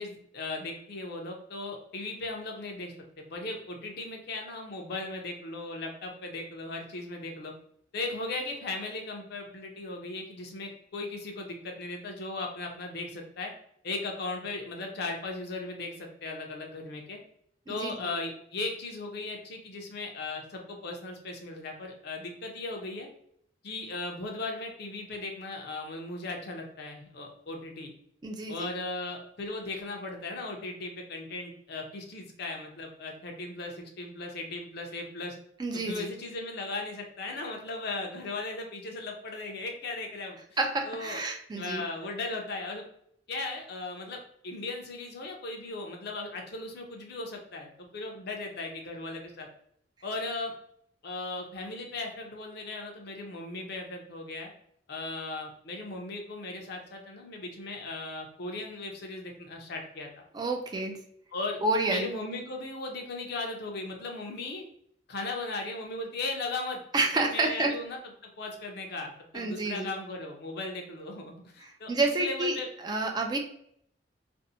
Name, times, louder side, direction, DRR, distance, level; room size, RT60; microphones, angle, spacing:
voice 1, 0.0-7.5 7.9-13.5 13.8-17.2 17.7-23.1 23.6-27.9 28.5-35.4 35.9-40.4 40.8-41.2 41.5-42.9 43.3-49.5 50.0-50.5 51.0-54.5 54.9-60.2 61.3-61.6 61.9-64.6 65.1-66.8 67.2-68.0 68.4-72.7, left 2 dB, 60° left, 2 dB, 0.6 m, -37 dB
voice 2, 17.7-18.1 28.2-28.7 35.6-36.1 40.6-41.8 60.3-61.0 61.6-62.1 66.9-67.7 69.3-69.9 71.6-72.6 72.8-73.4, right 2 dB, 25° right, 3 dB, 0.3 m, -29 dB
2.6 x 2.0 x 2.6 m, 0.69 s
head